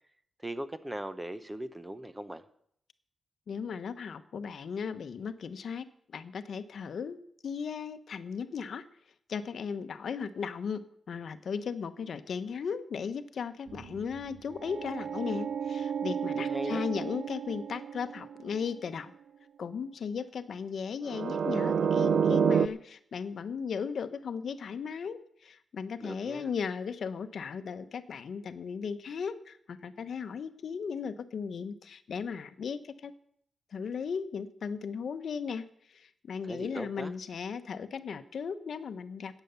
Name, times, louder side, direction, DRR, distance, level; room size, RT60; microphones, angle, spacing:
voice 1, 0.4-2.4 16.4-16.9 26.0-26.5 36.4-37.1, right 1 dB, 10° right, 12 dB, 0.7 m, -39 dB
voice 2, 3.5-5.9 6.1-8.9 9.3-19.1 19.6-33.1 33.7-39.4, left 6 dB, 65° left, 11 dB, 0.9 m, -36 dB
sound 1, 13.7-18.6 21.1-22.7, right 7 dB, 60° right, 0.5 m, -30 dB
14.5 x 9.1 x 6.9 m, 0.69 s
wide cardioid pair, 155°, 0 cm